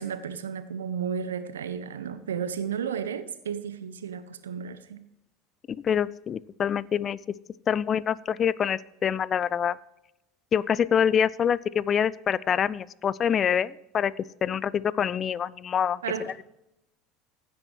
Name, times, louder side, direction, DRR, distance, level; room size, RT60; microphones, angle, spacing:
voice 1, 0.0-5.0 16.0-16.3, right 7 dB, 75° right, 0.7 m, -33 dB
voice 2, 5.7-7.2 7.7-9.8 10.5-14.1 14.4-16.0, left 8 dB, 35° left, 0.4 m, -25 dB
15.5 x 8.6 x 3.1 m
figure-of-eight pair, 70°, 0 cm